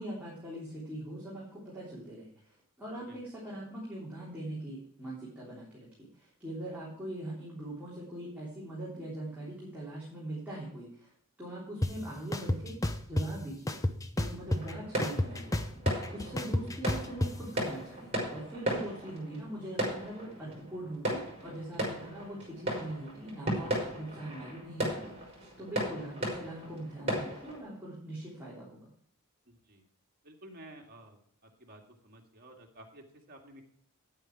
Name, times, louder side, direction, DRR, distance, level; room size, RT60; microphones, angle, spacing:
voice 1, 0.0-5.9 6.1-11.1 11.4-12.8 13.1-13.8 14.2-15.6 16.1-28.8, right 1 dB, 10° right, -8 dB, 3.4 m, -42 dB
sound 1, 11.8-11.9 12.3-13.3 13.7-14.7 15.0-17.3, left 1 dB, 15° left, 0.7 m, -30 dB
sound 2, 14.5-27.6, right 1 dB, 30° right, 4.7 m, -36 dB
voice 2, 29.5-29.8 30.2-31.2 31.4-33.6, right 1 dB, 45° right, 1 dB, 2.2 m, -53 dB
10.0 x 8.9 x 4.7 m, 0.64 s
head